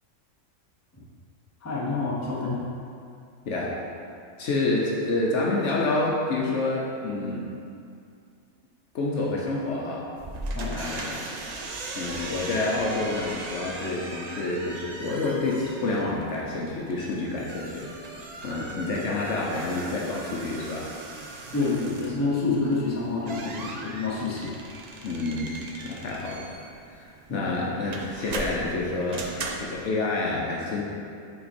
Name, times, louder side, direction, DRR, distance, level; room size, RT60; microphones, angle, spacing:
voice 1, 1.6-2.6 10.5-10.8 21.5-24.5 27.3-27.4, left 3 dB, 15° left, -6 dB, 0.8 m, -28 dB
voice 2, 4.4-7.5 8.9-10.1 10.7-11.2 11.9-20.9 25.0-26.5 26.9-29.3 29.5-30.8, left 2 dB, 65° left, -3 dB, 1.0 m, -28 dB
sound 1, 10.2-29.9, right 2 dB, 75° right, 0.3 m, -38 dB
5.6 x 4.2 x 4.2 m, 2.4 s
omnidirectional pair, 1.4 m